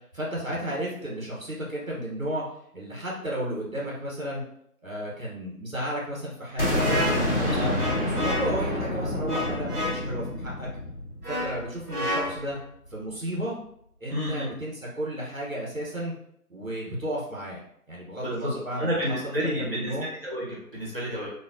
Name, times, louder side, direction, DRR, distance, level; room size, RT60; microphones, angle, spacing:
voice 1, 0.1-2.4 2.7-4.4 4.8-7.8 8.0-10.7 11.3-12.6 12.9-13.5 14.0-16.1 16.5-17.6 17.9-20.1, right 1 dB, 65° right, -4 dB, 1.3 m, -33 dB
sound 1, 6.6-12.4, left 1 dB, 40° left, 1.4 m, -28 dB
sound 2, 6.8-8.7 9.3-10.1 11.2-12.6, left 1 dB, 90° right, 1.4 m, -31 dB
voice 2, 7.4-7.7 14.1-14.5 18.2-18.5 18.8-21.3, equal, 40° right, -6 dB, 1.3 m, -30 dB
4.3 x 2.8 x 2.7 m, 0.71 s
figure-of-eight pair, 175°, 45 cm